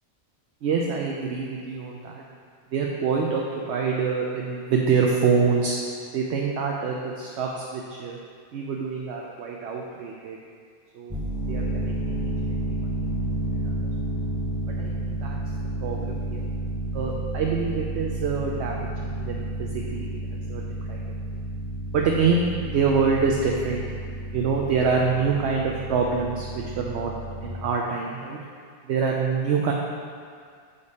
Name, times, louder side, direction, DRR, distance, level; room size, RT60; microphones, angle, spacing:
voice 1, 0.6-2.2 2.7-5.7 6.1-8.2 8.5-10.4 10.9-11.2 11.5-12.3 12.7-12.8 13.3-13.7 14.8-15.4 15.8-16.5 16.9-19.4 19.9-20.1 20.5-20.6 20.9-21.0 21.9-23.8 24.3-27.1 27.4-28.4 28.8-29.7, right 5 dB, 70° right, -1 dB, 0.9 m, -26 dB
sound 1, 11.1-27.5, right 2 dB, ahead, 0.7 m, -31 dB
6.8 x 5.1 x 4.1 m, 2.1 s
omnidirectional pair, 1.2 m